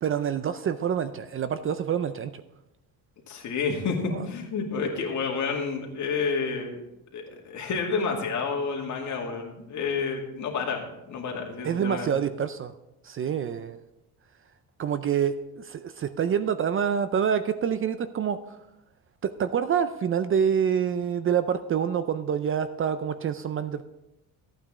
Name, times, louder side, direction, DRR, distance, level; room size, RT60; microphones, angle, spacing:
voice 1, 0.0-2.3 4.1-4.2 11.6-12.7 13.0-13.8 14.8-18.4 19.2-23.8, right 8 dB, 35° right, 12 dB, 0.5 m, -27 dB
voice 2, 3.3-6.8 7.1-12.1, left 5 dB, 50° left, 0 dB, 2.4 m, -30 dB
14.0 x 8.9 x 3.7 m, 0.90 s
cardioid pair, 140°, 37 cm